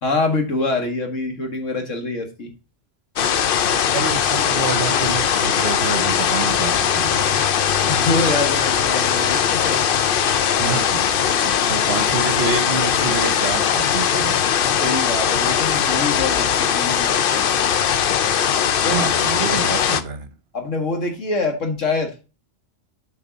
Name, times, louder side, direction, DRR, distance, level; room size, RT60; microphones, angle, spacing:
voice 1, 0.0-2.5 7.8-9.8 11.4-11.6 14.7-17.4 18.8-19.1 20.5-22.1, left 3 dB, 85° left, 2.2 m, -25 dB
sound 1, 3.2-20.0, left 8 dB, 55° left, 0.7 m, -20 dB
voice 2, 3.9-7.5 10.6-11.1 11.7-14.5 18.3-18.4 18.8-20.3, right 5 dB, 60° right, 1.1 m, -28 dB
8.7 x 5.2 x 4.0 m
omnidirectional pair, 1.3 m